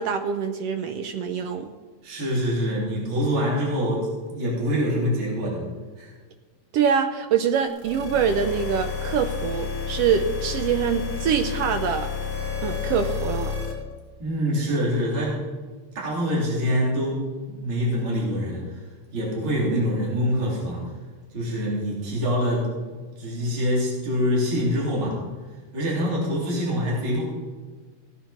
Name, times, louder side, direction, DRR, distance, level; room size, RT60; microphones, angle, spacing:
voice 1, 0.0-1.7 6.7-12.1 12.6-13.5, right 7 dB, 90° right, 7 dB, 1.4 m, -24 dB
voice 2, 2.0-5.7 6.0-6.1 14.2-15.4 16.0-18.8 19.1-20.8 21.3-22.7 23.2-25.2 25.7-27.2, equal, 40° right, -5 dB, 3.9 m, -25 dB
sound 1, 7.7-13.7, left 6 dB, 10° left, 3.0 m, -30 dB
17.5 x 9.3 x 4.3 m, 1.4 s
omnidirectional pair, 3.5 m